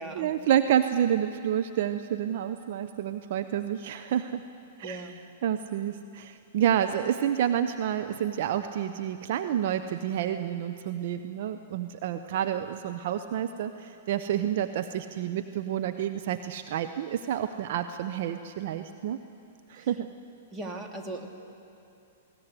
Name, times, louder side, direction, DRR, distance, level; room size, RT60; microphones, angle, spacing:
voice 1, 0.1-4.4 4.8-5.1 5.4-19.2 19.7-20.1, right 10 dB, 60° right, 9 dB, 0.8 m, -29 dB
voice 2, 4.8-5.2 19.8-19.9 20.5-21.3, right 2 dB, 20° right, 2 dB, 2.7 m, -38 dB
20.5 x 17.5 x 9.7 m, 2.7 s
hypercardioid pair, 115°, 0 cm